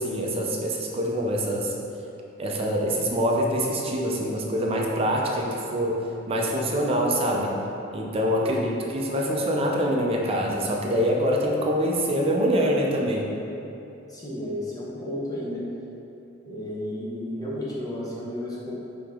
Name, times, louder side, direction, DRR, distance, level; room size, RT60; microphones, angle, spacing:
voice 1, 0.0-1.7 2.4-6.0 6.3-7.5 7.9-8.6 8.9-13.3, equal, 30° right, -1 dB, 0.5 m, -25 dB
voice 2, 8.4-8.9 14.1-15.7 16.5-18.7, left 1 dB, 20° left, -6 dB, 0.8 m, -32 dB
5.0 x 2.9 x 3.6 m, 2.8 s
head